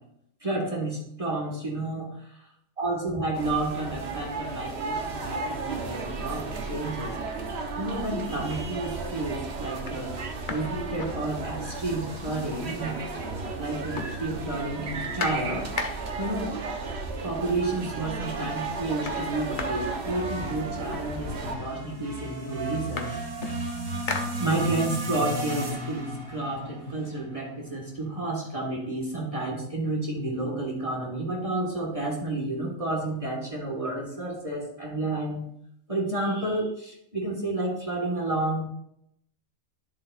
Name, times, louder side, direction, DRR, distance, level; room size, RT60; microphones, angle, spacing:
voice 1, 0.4-2.2 2.8-7.2 7.8-10.2 10.5-13.0 13.6-16.6 17.2-23.2 24.4-35.4 35.9-38.6, right 2 dB, 25° right, -2 dB, 1.7 m, -30 dB
sound 1, 3.3-21.5, right 3 dB, 55° right, 1.2 m, -34 dB
sound 2, 9.9-11.8 12.1-12.2 12.5-13.3 13.6-16.3 17.3-17.4 17.8-18.2 18.5-20.9 21.7-21.8 22.1-24.9 25.4-27.1, left 4 dB, 45° left, 0.9 m, -39 dB
sound 3, 19.4-27.7, right 1 dB, 70° right, 2.0 m, -35 dB
11.0 x 7.0 x 2.5 m, 0.73 s
omnidirectional pair, 1.4 m